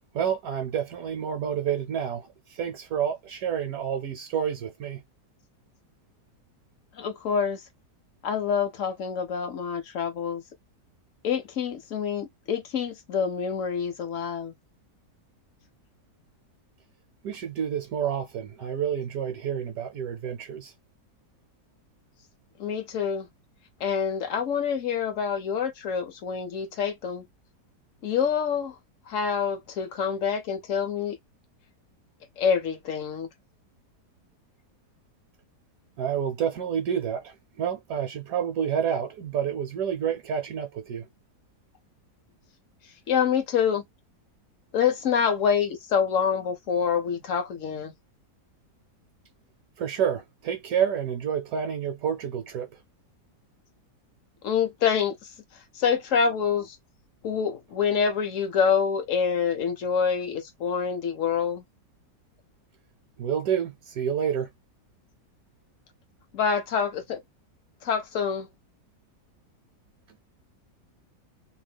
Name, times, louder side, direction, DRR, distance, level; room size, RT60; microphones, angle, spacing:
voice 1, 0.1-5.0 17.2-20.7 36.0-41.1 49.8-52.8 63.2-64.5, right 8 dB, 70° right, 1.0 m, -29 dB
voice 2, 6.9-7.6 8.2-10.4 11.2-14.5 22.6-23.3 23.8-27.3 28.0-28.7 29.1-31.2 32.4-33.3 43.1-43.8 44.7-47.9 54.4-55.2 55.7-56.8 57.2-61.6 66.3-67.2 67.8-68.5, left 7 dB, 60° left, 0.9 m, -26 dB
2.8 x 2.1 x 3.3 m
omnidirectional pair, 1.8 m